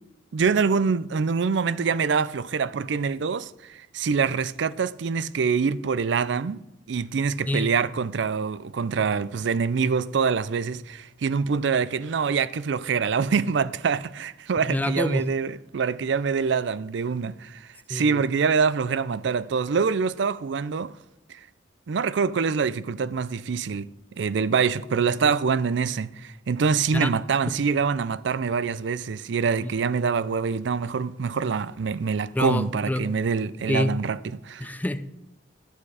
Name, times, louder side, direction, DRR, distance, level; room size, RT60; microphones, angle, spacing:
voice 1, 0.3-6.6 6.9-20.9 21.3-21.4 21.9-23.9 24.2-34.7, right 5 dB, 70° right, 0.4 m, -25 dB
voice 2, 14.7-15.3 17.9-18.2 26.9-27.1 27.5-27.6 29.6-29.7 32.3-33.1 33.7-33.9 34.6-35.0, left 1 dB, 10° left, 0.5 m, -26 dB
11.0 x 9.2 x 4.8 m
head